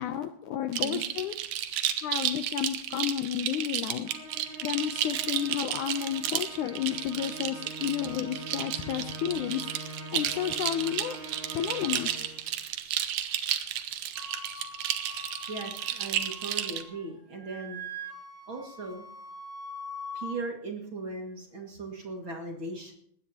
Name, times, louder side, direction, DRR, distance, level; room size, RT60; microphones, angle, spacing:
voice 1, 0.0-1.3 2.0-4.1 4.6-11.2 11.5-12.1, left 10 dB, 75° left, 9 dB, 1.9 m, -32 dB
sound 1, 0.7-16.8, right 11 dB, 70° right, 2.2 m, -32 dB
Musical instrument, 4.0-12.5, right 2 dB, 90° right, 8.7 m, -43 dB
Wind instrument woodwind instrument, 14.1-17.1 17.3-20.4, left 1 dB, 10° right, 1.0 m, -43 dB
voice 2, 15.5-17.8 18.5-19.1 20.1-22.9, right 3 dB, 40° right, 1 dB, 2.3 m, -38 dB
20.5 x 17.5 x 2.9 m, 0.67 s
omnidirectional pair, 4.1 m